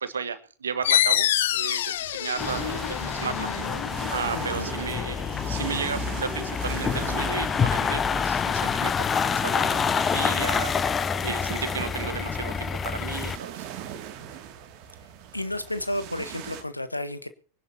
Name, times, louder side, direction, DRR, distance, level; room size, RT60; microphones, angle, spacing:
voice 1, 0.0-3.5 4.1-8.9 9.2-10.8 11.2-13.7, right 6 dB, 70° right, 13 dB, 1.4 m, -34 dB
sound 1, 0.8-6.1, left 12 dB, 55° left, 0.7 m, -28 dB
sound 2, 2.4-13.4, left 6 dB, 20° left, 0.7 m, -27 dB
sound 3, 2.4-16.6, right 10 dB, 40° right, 2.4 m, -40 dB
voice 2, 15.3-17.3, left 1 dB, 85° left, 13 dB, 1.3 m, -31 dB
24.0 x 11.0 x 2.9 m, 0.42 s
figure-of-eight pair, 90°, 0 cm